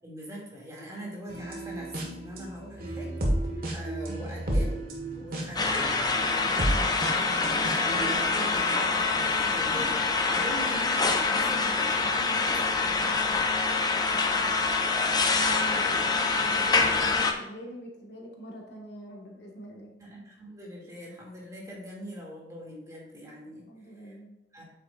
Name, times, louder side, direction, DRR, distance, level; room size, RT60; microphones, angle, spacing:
voice 1, 0.0-3.1 3.7-4.8 5.1-5.9 6.3-13.4 20.0-23.7 24.0-24.1 24.5-24.6, equal, 20° right, -3 dB, 2.5 m, -42 dB
sound 1, 1.3-9.1 9.6-10.1, right 1 dB, 55° right, 1.6 m, -33 dB
sound 2, 5.6-17.3, left 4 dB, 25° left, 0.7 m, -25 dB
voice 2, 14.1-14.8 15.3-19.9 23.7-24.4, equal, 70° left, -1 dB, 1.8 m, -43 dB
8.6 x 7.7 x 2.5 m, 0.91 s
head